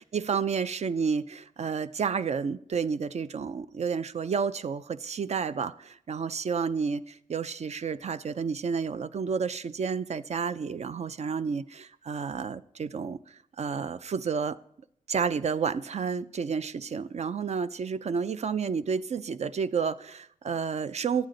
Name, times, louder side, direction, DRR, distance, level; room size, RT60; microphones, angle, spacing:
voice 1, 0.1-14.6 15.1-21.3, right 6 dB, 45° right, 0.5 m, -30 dB
11.5 x 9.2 x 3.9 m
cardioid pair, 85°, 15 cm